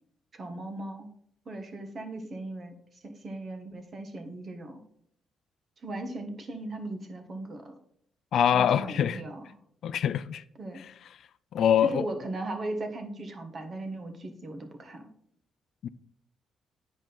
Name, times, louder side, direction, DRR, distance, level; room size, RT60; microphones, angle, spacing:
voice 1, 0.3-1.1 1.4-4.8 5.8-7.7 8.5-9.4 10.6-10.8 11.8-15.1, right 2 dB, 40° right, 1.3 m, -38 dB
voice 2, 8.3-9.2 9.8-10.4 10.8-10.9 11.5-12.1 15.8-15.9, left 9 dB, 70° left, 0.4 m, -24 dB
8.6 x 5.0 x 3.9 m
cardioid pair, 90°, 0 cm